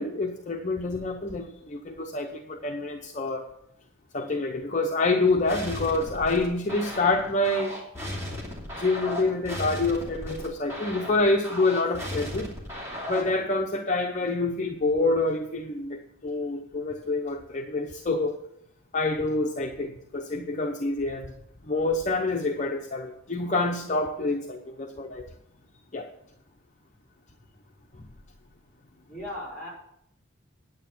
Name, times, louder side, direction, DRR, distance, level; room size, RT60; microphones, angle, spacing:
voice 1, 0.0-3.4 4.1-7.7 8.8-12.5 13.1-18.3 18.9-21.3 21.7-25.2 25.9-26.1, left 2 dB, 35° left, 2 dB, 0.7 m, -27 dB
sound 1, 5.5-13.4, left 1 dB, 15° right, 2.7 m, -36 dB
voice 2, 29.1-29.7, left 1 dB, 5° left, -4 dB, 4.7 m, -38 dB
9.1 x 9.0 x 5.8 m, 0.76 s
head